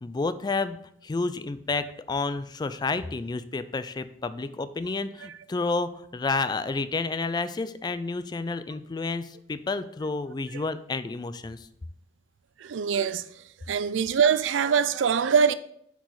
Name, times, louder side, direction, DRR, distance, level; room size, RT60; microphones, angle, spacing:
voice 1, 0.0-0.8 1.0-11.6, left 3 dB, 25° left, 0.3 m, -30 dB
voice 2, 12.6-13.2 13.7-15.5, right 6 dB, 85° right, 0.4 m, -23 dB
8.4 x 4.8 x 3.9 m
head